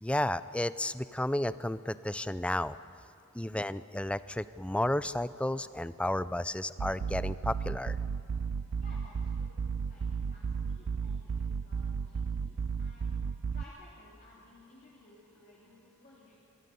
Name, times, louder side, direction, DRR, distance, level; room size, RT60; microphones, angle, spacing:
voice 1, 0.0-2.8 3.3-8.0, left 1 dB, 5° left, 15 dB, 0.4 m, -32 dB
sound 1, 6.8-13.6, right 5 dB, 75° right, 0.5 m, -34 dB
voice 2, 8.8-9.6 9.8-13.2 13.5-16.4, left 2 dB, 40° left, -6 dB, 3.6 m, -57 dB
26.5 x 14.0 x 9.5 m, 2.7 s
head